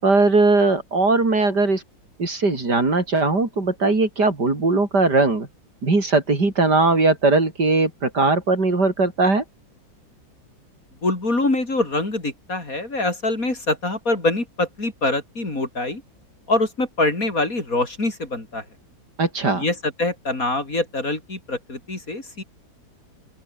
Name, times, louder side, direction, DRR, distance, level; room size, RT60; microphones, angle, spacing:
voice 1, 0.0-1.8 2.2-5.5 5.8-9.4 19.2-19.7, right 3 dB, 60° right, 4.9 m, -19 dB
voice 2, 11.0-16.0 16.5-18.6 19.5-22.4, left 2 dB, 45° left, 5.2 m, -24 dB
open air
omnidirectional pair, 2.1 m